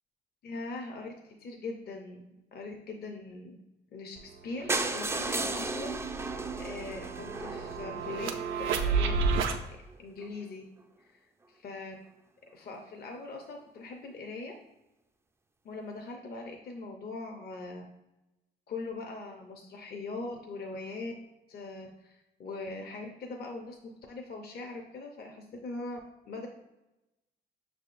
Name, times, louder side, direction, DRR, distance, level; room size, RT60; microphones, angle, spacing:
voice 1, 0.4-3.6 3.9-4.2 4.4-8.3 8.6-9.2 10.0-10.6 11.0-11.2 11.5-11.9 12.5-14.5 15.6-17.8 18.7-21.1 21.5-26.0 26.3-26.5, left 3 dB, 50° left, 2 dB, 0.7 m, -41 dB
sound 1, 4.2-4.3 4.6-9.6, right 4 dB, 85° right, 0.5 m, -32 dB
sound 2, 4.7-8.6 9.2-9.3 9.6-9.7 9.9-10.0 10.2-10.3, right 3 dB, 15° right, 0.3 m, -34 dB
6.1 x 3.5 x 2.5 m, 0.98 s
cardioid pair, 90°, 20 cm